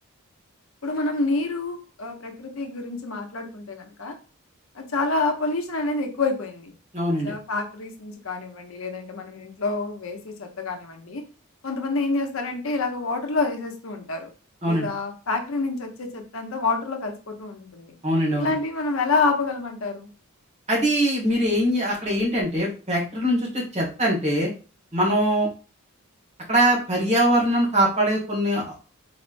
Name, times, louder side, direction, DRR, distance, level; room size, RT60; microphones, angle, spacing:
voice 1, 0.8-4.1 4.7-6.7 7.2-11.2 11.6-14.3 14.6-17.9 18.4-20.1, left 3 dB, 60° left, 5 dB, 0.8 m, -28 dB
voice 2, 6.9-7.3 14.6-14.9 18.0-18.5 20.7-24.5 24.9-25.5 26.5-28.7, right 1 dB, 30° right, -4 dB, 1.6 m, -22 dB
4.2 x 3.3 x 2.5 m, 0.35 s
head